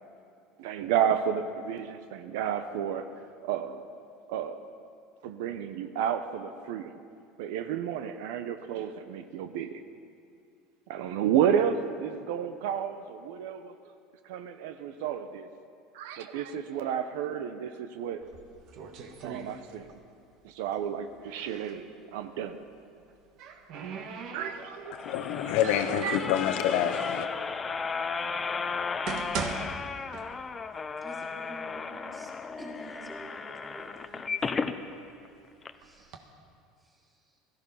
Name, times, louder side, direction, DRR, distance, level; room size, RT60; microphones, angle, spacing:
voice 1, 0.6-3.1 3.4-3.9 4.3-4.6 5.2-6.9 7.4-9.8 10.9-13.7 14.3-15.5 15.9-18.2 19.2-19.9 20.4-21.9 22.1-22.6 24.3-24.9 25.6-26.2, right 8 dB, 80° right, 9 dB, 0.7 m, -31 dB
sound 1, 18.2-20.1 20.4-21.8 22.9-25.0 25.5-26.5 27.2-27.3 28.0-28.1 28.7-30.7 31.0-31.1 31.8-31.9 32.3-33.0 33.5-35.2 35.8-36.2, right 6 dB, 55° right, 1.4 m, -40 dB
sound 2, 24.6-34.8 35.3-35.4 35.6-35.7, left 5 dB, 20° left, 0.6 m, -35 dB
voice 2, 25.0-27.3, left 10 dB, 70° left, 9 dB, 0.8 m, -27 dB
voice 3, 31.0-32.3 32.6-34.8 35.7-36.3 36.8-37.4, right 2 dB, 20° right, -3 dB, 3.5 m, -49 dB
17.0 x 14.0 x 5.7 m, 2.4 s
supercardioid pair, 130°, 0 cm